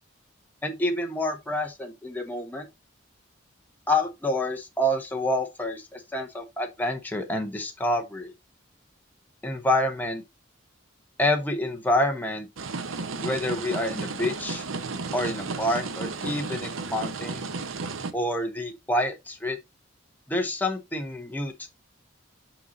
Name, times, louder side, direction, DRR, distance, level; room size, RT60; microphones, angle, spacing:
voice 1, 0.6-2.7 3.9-8.3 9.4-10.2 11.2-12.5 13.2-14.6 15.1-17.4 18.1-19.6 20.3-21.7, left 1 dB, 10° left, 1.1 m, -28 dB
sound 1, 12.6-18.1, right 4 dB, 90° right, 0.9 m, -33 dB
5.9 x 5.6 x 3.9 m
head